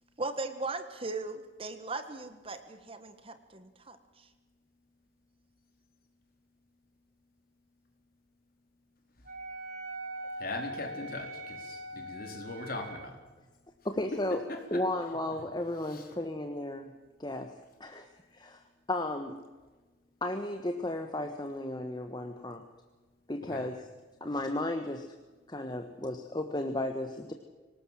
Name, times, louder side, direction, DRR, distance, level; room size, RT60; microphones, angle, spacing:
voice 1, 0.2-4.3, right 3 dB, 30° right, 10 dB, 1.4 m, -38 dB
Wind instrument woodwind instrument, 9.3-13.2, right 1 dB, 45° right, 1.8 m, -42 dB
voice 2, 10.4-13.2 14.5-14.8 15.9-16.1 23.4-23.6, left 2 dB, 50° left, 3 dB, 4.2 m, -40 dB
voice 3, 13.8-14.4 14.7-16.9 17.2-17.5 17.8-19.4 20.2-22.6 23.3-23.9 24.2-25.1 25.5-27.3, left 1 dB, 20° left, 6 dB, 1.3 m, -34 dB
25.0 x 19.0 x 7.6 m, 1.2 s
head